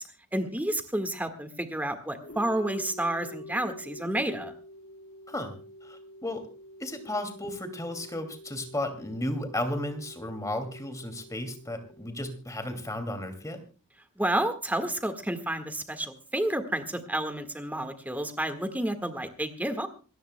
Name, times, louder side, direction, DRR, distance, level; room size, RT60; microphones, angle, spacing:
voice 1, 0.3-4.5 14.2-19.9, right 1 dB, 5° right, 7 dB, 1.6 m, -30 dB
sound 1, 2.2-12.9, left 1 dB, 65° left, 2.0 m, -47 dB
voice 2, 5.3-6.5 6.8-13.6, left 1 dB, 15° left, 7 dB, 2.4 m, -34 dB
27.0 x 14.0 x 2.2 m, 0.36 s
head